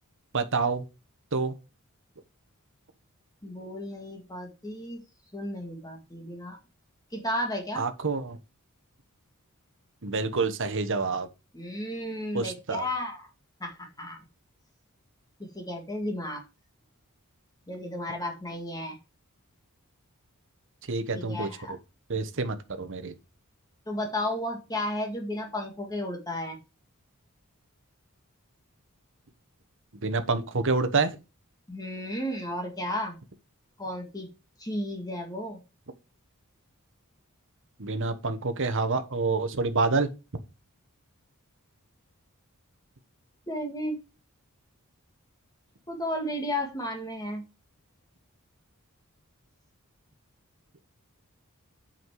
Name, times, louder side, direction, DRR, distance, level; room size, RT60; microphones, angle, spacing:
voice 1, 0.3-0.8 1.3-1.5 7.8-8.4 10.0-11.3 12.3-12.9 20.9-21.8 22.1-23.1 30.0-31.2 37.8-40.1, right 3 dB, 60° right, 1.2 m, -27 dB
voice 2, 3.4-5.0 5.3-6.6 7.1-7.8 11.5-13.3 13.6-14.2 15.5-16.4 17.7-19.0 21.1-21.8 23.9-26.6 31.7-33.2 33.8-34.3 34.6-35.6 43.5-44.0 45.9-47.4, left 1 dB, 15° left, 1.9 m, -33 dB
8.2 x 5.7 x 4.7 m
head